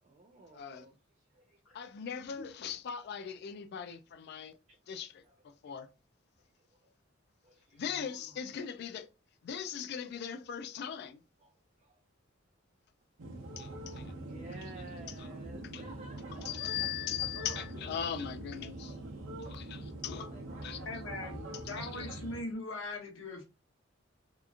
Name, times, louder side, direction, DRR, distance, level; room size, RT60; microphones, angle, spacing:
voice 1, 0.0-1.9 4.7-4.8 5.2-5.4 6.4-6.9 7.4-8.6 11.4-12.0 13.3-17.1 20.3-21.5, right 2 dB, 35° right, 0.4 m, -55 dB
voice 2, 0.5-0.9 1.7-4.6 4.9-5.9 7.7-9.1 9.4-11.2 13.6-14.1 15.7-15.8 16.4-19.0 19.4-20.3 20.6-20.8 21.8-22.1, left 8 dB, 55° left, 0.3 m, -39 dB
sound 1, 13.2-22.4, right 1 dB, 85° right, 0.6 m, -43 dB
voice 3, 20.9-23.4, left 2 dB, 85° left, 0.8 m, -40 dB
2.8 x 2.4 x 2.4 m
head